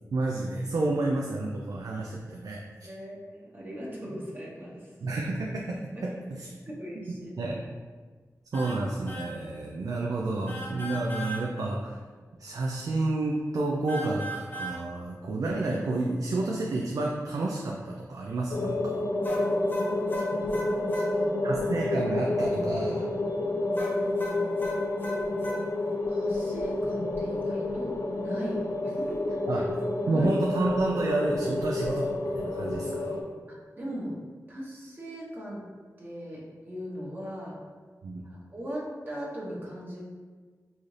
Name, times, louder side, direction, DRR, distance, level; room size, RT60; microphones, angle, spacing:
voice 1, 0.1-2.9 5.0-6.5 7.0-7.6 8.5-12.0 12.4-19.0 21.4-23.1 29.5-29.8 30.1-33.2 38.0-38.2, right 2 dB, 70° right, -2 dB, 0.4 m, -30 dB
voice 2, 2.8-4.9 5.9-6.0 6.7-7.3 20.1-21.3 23.6-24.9 26.1-29.2 30.1-30.3 33.5-34.1 34.5-35.6 36.0-37.6 38.2-40.0, equal, 35° right, -6 dB, 1.0 m, -39 dB
sound 1, 8.5-8.8 9.1-9.3 10.5-11.4 13.9-14.8 19.2-21.1 23.7-25.6, equal, 35° left, 0.9 m, -38 dB
sound 2, 18.5-33.2, left 2 dB, 60° left, 0.5 m, -29 dB
4.0 x 2.4 x 3.2 m, 1.5 s
wide cardioid pair, 70°, 6 cm